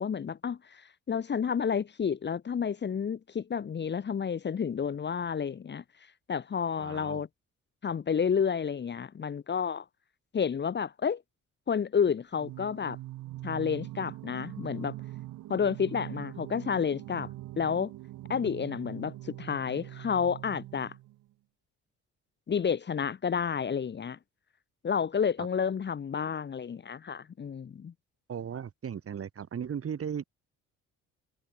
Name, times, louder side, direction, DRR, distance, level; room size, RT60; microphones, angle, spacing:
voice 1, 0.0-5.8 6.3-7.3 7.8-9.8 10.3-11.2 11.7-13.0 13.4-14.9 15.5-17.9 18.3-20.9 22.5-24.2 24.8-27.9, left 7 dB, 35° left, 0.9 m, -30 dB
voice 2, 6.8-7.2 28.3-30.2, right 8 dB, 50° right, 2.7 m, -36 dB
Singing, 12.3-21.3, right 16 dB, 85° right, 1.4 m, -43 dB
cardioid pair, 90°, 30 cm